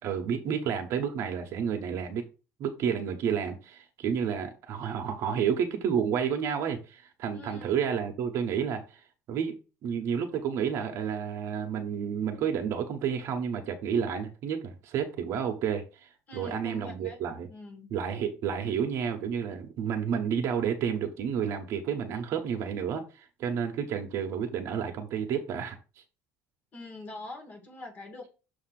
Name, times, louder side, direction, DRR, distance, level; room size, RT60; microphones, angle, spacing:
voice 1, 0.0-2.2 2.6-17.5 17.9-25.8, right 7 dB, 50° right, 0.9 m, -30 dB
voice 2, 7.3-7.8 16.3-17.2 17.5-18.0 26.7-28.3, left 2 dB, 30° left, 1.9 m, -44 dB
6.6 x 2.9 x 5.8 m
cardioid pair, 165°, 6 cm